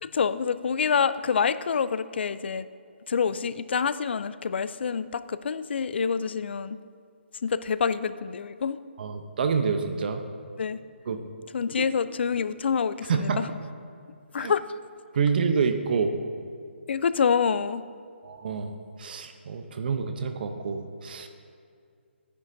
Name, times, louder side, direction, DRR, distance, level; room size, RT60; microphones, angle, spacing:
voice 1, 0.0-2.7 3.1-6.8 7.4-8.8 10.6-10.8 11.5-13.5 14.3-14.6 16.9-17.8, left 6 dB, 60° left, 15 dB, 0.4 m, -27 dB
voice 2, 9.0-10.2 11.1-11.2 11.8-11.9 13.1-13.5 14.4-14.5 15.1-16.1 18.2-18.7 19.0-21.3, right 5 dB, 50° right, 7 dB, 0.8 m, -27 dB
14.0 x 9.9 x 2.7 m, 2.3 s
figure-of-eight pair, 145°, 6 cm